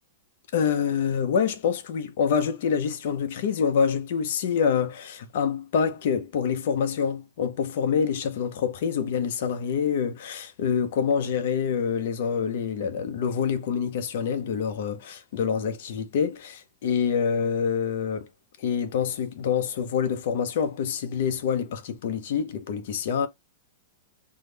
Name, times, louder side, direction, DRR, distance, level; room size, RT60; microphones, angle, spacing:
voice 1, 0.5-18.3 18.6-23.3, left 7 dB, 45° left, 0.6 m, -26 dB
3.5 x 2.0 x 3.2 m
supercardioid pair, 180°, 0 cm